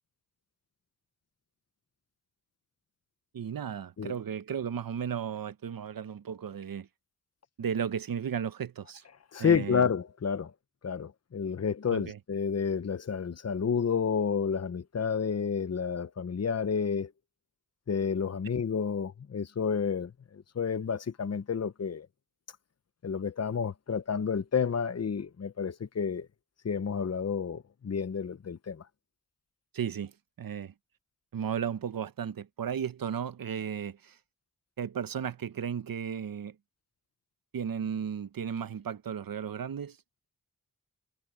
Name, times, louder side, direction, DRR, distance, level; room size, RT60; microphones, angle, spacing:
voice 1, 3.3-6.9 7.6-9.0 9.4-9.9 11.9-12.2 29.7-30.1 30.4-30.7 31.3-34.2 34.8-36.6 37.5-40.0, right 8 dB, 75° right, 0.9 m, -34 dB
voice 2, 9.3-10.5 10.8-17.1 17.9-22.1 23.0-26.3 26.6-28.8, left 6 dB, 45° left, 0.8 m, -30 dB
wide cardioid pair, 70°, 35 cm